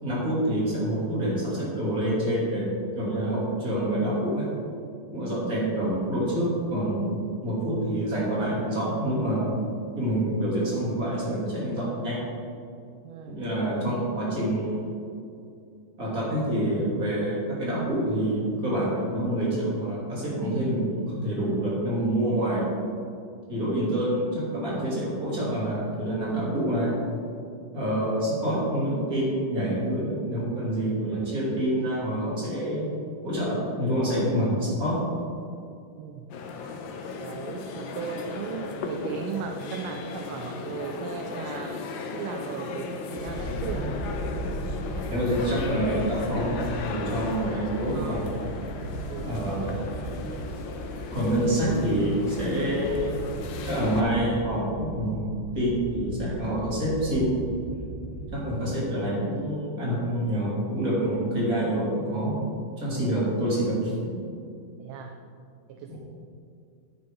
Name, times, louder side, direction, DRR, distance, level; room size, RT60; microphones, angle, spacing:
voice 1, 0.0-2.7 2.9-4.5 5.1-9.5 10.0-12.2 13.3-14.8 16.0-22.7 23.5-26.9 27.7-32.9 33.2-35.0 45.1-48.2 49.2-49.8 51.1-53.2 53.6-55.2 55.5-57.5 58.3-62.3 62.8-63.9 65.9-66.0, right 1 dB, 40° right, -6 dB, 3.2 m, -27 dB
voice 2, 13.0-13.4 36.0-36.3 37.1-43.9 47.9-48.4 49.1-49.9 50.2-50.5 51.5-51.8 58.4-58.8 64.8-65.2 65.7-66.0, right 7 dB, 80° right, 4 dB, 1.4 m, -37 dB
sound 1, 36.3-54.0, left 4 dB, 70° left, 1.4 m, -36 dB
sound 2, 43.2-58.4, right 1 dB, 10° left, 2.6 m, -37 dB
9.7 x 9.6 x 3.7 m, 2.5 s
omnidirectional pair, 2.3 m